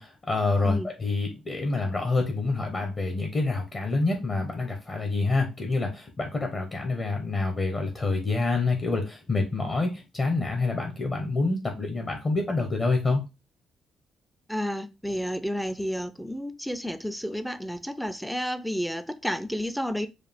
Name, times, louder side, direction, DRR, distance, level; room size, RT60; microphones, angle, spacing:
voice 1, 0.0-13.2, left 3 dB, 35° left, 1.1 m, -27 dB
voice 2, 14.5-20.1, equal, ahead, 0.5 m, -31 dB
4.8 x 2.4 x 3.5 m
cardioid pair, 90°, 0 cm